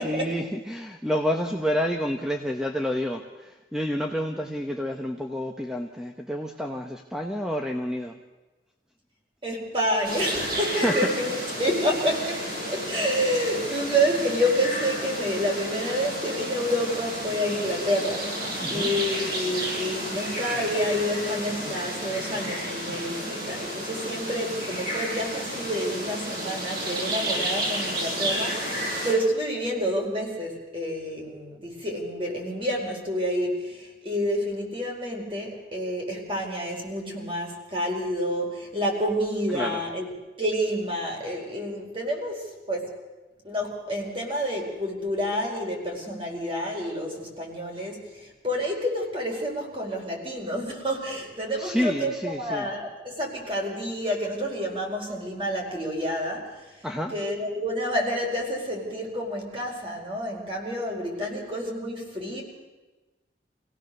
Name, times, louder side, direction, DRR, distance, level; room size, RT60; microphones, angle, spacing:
voice 1, 0.0-8.2 10.5-11.1 18.6-18.9 39.5-39.8 51.6-52.7 56.8-57.1, equal, 5° right, 3 dB, 0.9 m, -29 dB
voice 2, 9.4-18.3 18.7-40.1 40.4-42.9 43.4-62.4, equal, 30° right, 0 dB, 4.6 m, -29 dB
sound 1, 10.0-29.1, equal, 55° right, 7.9 m, -31 dB
26.0 x 17.0 x 6.7 m, 1.2 s
head